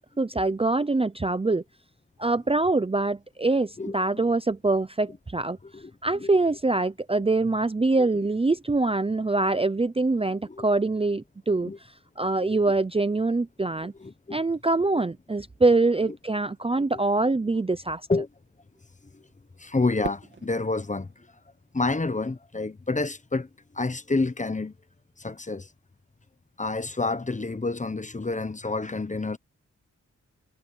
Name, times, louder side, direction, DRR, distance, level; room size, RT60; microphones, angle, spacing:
voice 1, 0.2-1.6 2.2-5.6 6.0-11.7 12.2-13.9 14.3-18.0, right 3 dB, 20° right, 0.6 m, -24 dB
voice 2, 3.8-4.2 5.6-6.3 8.0-8.1 10.4-10.6 11.6-11.8 12.4-12.7 14.0-14.4 16.1-16.2 18.1-18.3 19.1-19.3 19.6-21.3 21.7-23.5 23.7-24.7 25.2-25.7 26.6-29.4, left 3 dB, 25° left, 1.1 m, -29 dB
Fireworks, 20.0-22.3, right 3 dB, 35° right, 2.5 m, -41 dB
wide cardioid pair, 80°, 30 cm